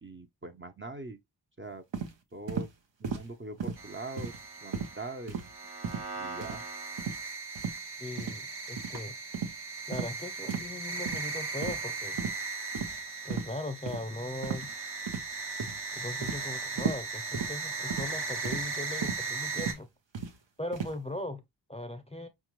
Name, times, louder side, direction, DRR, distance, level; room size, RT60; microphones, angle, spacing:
voice 1, 0.0-1.2 1.6-1.8 2.3-2.7 3.0-4.3 4.6-5.3 6.2-6.6, right 2 dB, 30° right, 0.6 m, -42 dB
sound 1, 1.9-2.1 2.5-2.7 3.0-3.3 3.6-3.8 4.2-4.4 4.7-4.9 5.3-5.5 5.8-6.1 6.4-6.6 7.0-7.2 7.5-7.8 8.2-8.4 8.8-8.9 9.3-9.5 9.9-10.1 10.5-10.7 11.0-11.2 11.6-11.9 12.2-12.4 12.7-13.0 13.3-13.5 13.9-14.0 14.4-14.7 15.1-15.3 15.6-15.8 16.2-16.4 16.8-17.0 17.3-17.5 17.9-18.1 18.4-18.7 19.0-19.2 19.6-19.8 20.1-20.3 20.7-20.9, right 6 dB, 90° right, 0.7 m, -35 dB
sound 2, 3.8-19.7, right 4 dB, 65° right, 1.1 m, -38 dB
voice 2, 8.0-9.2 9.9-12.2 13.2-14.7 15.9-19.9 20.6-21.4 21.7-22.3, left 1 dB, 15° left, 0.5 m, -39 dB
5.0 x 2.3 x 3.0 m
wide cardioid pair, 45°, 43 cm